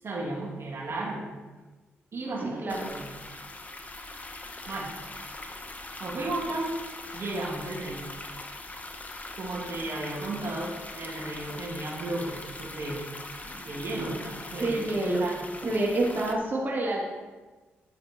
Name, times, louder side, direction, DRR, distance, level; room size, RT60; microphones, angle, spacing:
voice 1, 0.0-1.3 2.1-2.6 2.9-3.1 4.6-4.9 6.0-6.8 7.1-8.1 9.4-13.1 13.4-14.8 15.2-15.4, right 2 dB, 60° right, -4 dB, 2.9 m, -34 dB
voice 2, 2.4-2.9 13.9-14.1 14.6-15.2 15.6-17.0, right 2 dB, 40° right, -4 dB, 2.8 m, -28 dB
sound 1, 2.7-16.3, left 2 dB, 30° left, 1.4 m, -42 dB
10.0 x 7.3 x 4.6 m, 1.2 s
supercardioid pair, 50°, 5 cm